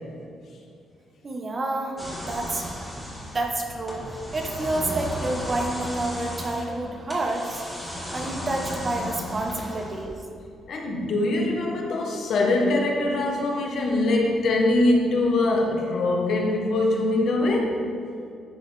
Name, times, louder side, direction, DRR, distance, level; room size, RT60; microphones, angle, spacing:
voice 1, 1.2-2.0 2.3-2.6 3.1-4.1 4.3-7.6 8.1-10.2, right 2 dB, 35° right, 2 dB, 0.9 m, -29 dB
sound 1, 2.0-10.3, equal, ahead, 1.5 m, -35 dB
voice 2, 10.7-17.8, left 2 dB, 65° left, 0 dB, 1.0 m, -23 dB
11.0 x 3.9 x 3.3 m, 2.4 s
cardioid pair, 90°, 0 cm